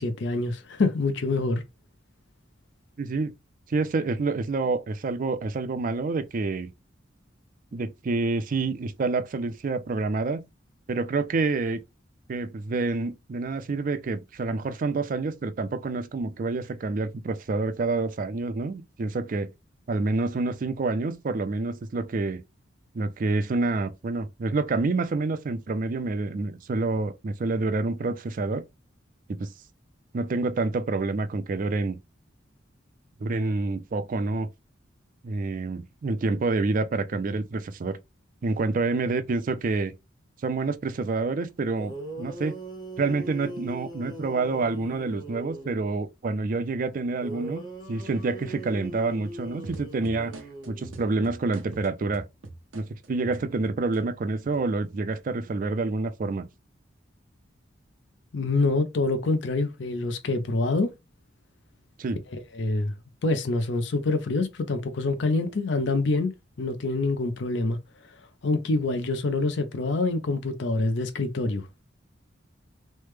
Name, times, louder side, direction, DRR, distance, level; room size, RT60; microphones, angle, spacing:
voice 1, 0.0-1.6 58.3-60.9 62.5-62.9 63.2-66.3 66.6-67.8 68.4-71.7, left 3 dB, 65° left, 0.5 m, -26 dB
voice 2, 3.0-3.3 3.7-6.7 7.7-10.4 10.9-11.8 12.3-19.5 19.9-22.4 22.9-28.6 29.3-29.5 30.1-32.0 33.2-34.5 35.2-38.0 38.4-39.9 40.4-42.6 43.0-50.3 50.7-52.3 52.7-56.5 62.0-62.2, right 3 dB, 45° right, 0.4 m, -28 dB
sound 1, 41.5-41.6 41.8-45.9 47.2-51.2, right 1 dB, 25° left, 0.8 m, -40 dB
sound 2, 49.6-54.0 54.4-55.2, right 2 dB, 80° right, 0.7 m, -42 dB
3.2 x 2.1 x 3.2 m
head